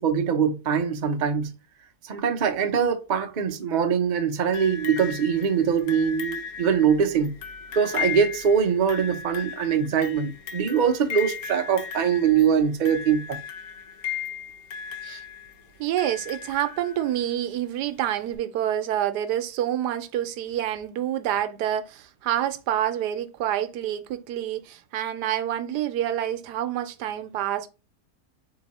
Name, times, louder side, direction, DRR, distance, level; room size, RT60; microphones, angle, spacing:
voice 1, 0.0-1.5 2.0-7.4 7.7-13.4 15.0-15.2, right 7 dB, 60° right, 0.4 m, -23 dB
sound 1, 4.5-17.4 18.3-18.4, left 7 dB, 70° left, 1.1 m, -36 dB
voice 2, 15.8-27.7, right 11 dB, 80° right, 1.1 m, -27 dB
3.9 x 2.7 x 4.1 m
omnidirectional pair, 1.8 m